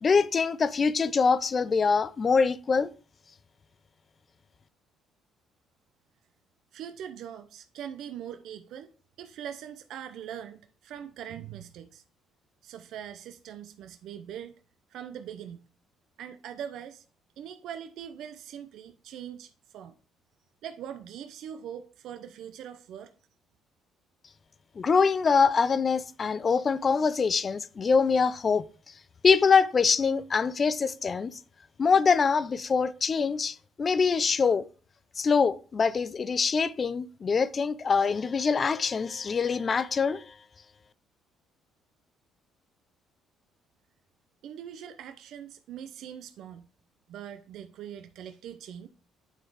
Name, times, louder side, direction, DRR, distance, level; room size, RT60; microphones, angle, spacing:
voice 1, 0.0-2.9 24.8-28.6 29.2-31.3 31.8-34.6 35.2-40.2, left 5 dB, 40° left, 0.6 m, -24 dB
voice 2, 6.7-8.9 9.2-12.0 12.6-14.6 14.9-15.7 16.2-17.0 17.4-19.9 20.6-23.1 44.4-46.7 47.1-48.9, right 9 dB, 70° right, 0.6 m, -42 dB
9.2 x 3.9 x 4.8 m
supercardioid pair, 75°, 0 cm